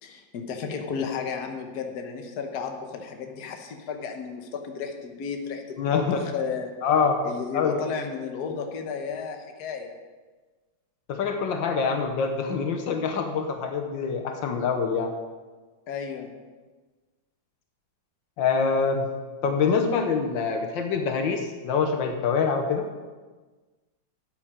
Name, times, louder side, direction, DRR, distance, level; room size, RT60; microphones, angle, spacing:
voice 1, 0.0-6.7 7.2-9.9 15.9-16.3, left 6 dB, 60° left, 4 dB, 1.6 m, -33 dB
voice 2, 5.8-6.4 6.8-7.2 7.5-7.8 11.1-15.1 18.4-19.1 19.4-22.9, left 5 dB, 80° left, 5 dB, 1.6 m, -25 dB
12.0 x 8.4 x 5.0 m, 1.3 s
omnidirectional pair, 2.0 m